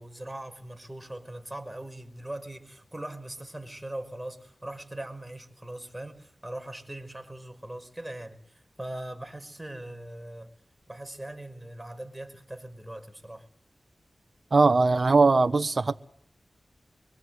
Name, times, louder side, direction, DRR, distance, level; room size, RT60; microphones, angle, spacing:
voice 1, 0.0-10.5 10.9-13.5, right 1 dB, 15° right, 6.0 m, -40 dB
voice 2, 14.5-16.0, right 3 dB, 60° right, 1.3 m, -20 dB
26.0 x 23.5 x 8.1 m
cardioid pair, 45°, 0 cm